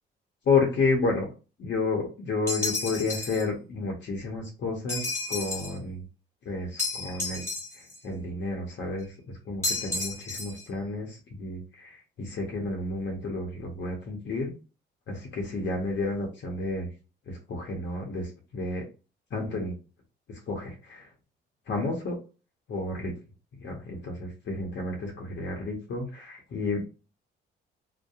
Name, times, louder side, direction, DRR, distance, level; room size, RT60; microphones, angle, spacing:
voice 1, 0.5-1.3 1.6-6.0 6.4-7.4 7.7-9.1 9.5-14.5 15.1-16.9 17.3-18.8 19.3-19.7 20.5-21.1 21.7-22.2 22.7-23.1 23.6-26.8, left 3 dB, 65° left, 0 dB, 0.8 m, -31 dB
sound 1, 2.5-3.4 4.9-5.8 6.8-8.0 9.6-10.6, left 2 dB, 15° left, 1.3 m, -32 dB
2.7 x 2.1 x 2.3 m, 0.33 s
cardioid pair, 90°, 20 cm